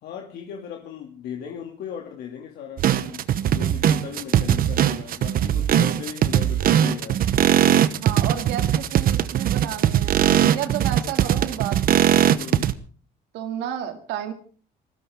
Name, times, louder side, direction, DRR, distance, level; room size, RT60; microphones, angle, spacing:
voice 1, 0.0-7.2 11.0-11.1 12.3-12.8, left 8 dB, 75° left, 1 dB, 2.7 m, -37 dB
sound 1, 2.8-12.7, right 10 dB, 60° right, 1.0 m, -20 dB
voice 2, 8.0-10.2 10.5-12.1 13.3-14.3, right 10 dB, 90° right, 7 dB, 2.6 m, -31 dB
20.5 x 17.0 x 3.7 m, 0.41 s
cardioid pair, 110°, 17 cm